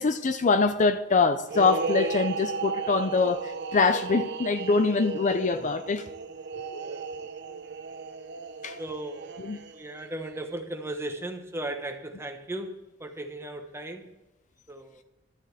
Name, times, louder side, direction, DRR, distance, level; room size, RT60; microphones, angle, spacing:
voice 1, 0.0-6.1 8.6-8.8 9.4-9.6, left 4 dB, 35° left, 0.5 m, -24 dB
sound 1, 1.5-10.0, right 5 dB, 55° right, 0.8 m, -35 dB
voice 2, 6.8-7.1 8.8-14.1 14.7-15.0, right 1 dB, 15° right, 1.2 m, -37 dB
12.5 x 7.4 x 8.3 m
head